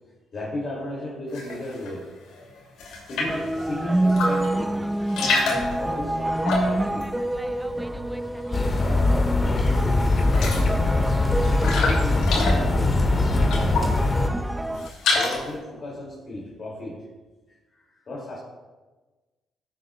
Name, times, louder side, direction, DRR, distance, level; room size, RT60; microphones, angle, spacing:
voice 1, 0.3-2.4 3.0-5.0 5.8-7.2 8.3-10.6 11.6-14.1 15.1-17.1 17.7-18.4, left 1 dB, 50° left, -4 dB, 2.8 m, -35 dB
sound 1, 1.3-1.9 2.3-3.5 4.0-4.6 4.9-8.3 8.6-9.3 9.6-9.7 10.0-14.0 14.4-15.6, left 3 dB, 85° left, 2.7 m, -28 dB
sound 2, 3.3-14.9, right 1 dB, 10° right, 0.3 m, -28 dB
sound 3, 8.5-14.3, left 2 dB, 30° left, 1.1 m, -21 dB
16.5 x 8.0 x 2.4 m, 1.2 s
cardioid pair, 90°, 0 cm